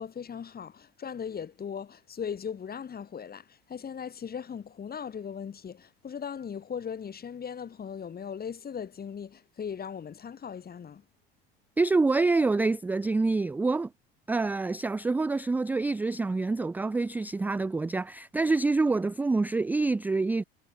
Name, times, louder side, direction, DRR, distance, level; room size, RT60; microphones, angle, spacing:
voice 1, 0.0-11.0, left 7 dB, 30° left, 4.7 m, -38 dB
voice 2, 11.8-13.9 14.3-20.4, right 3 dB, 5° right, 0.3 m, -26 dB
hypercardioid pair, 75°, 29 cm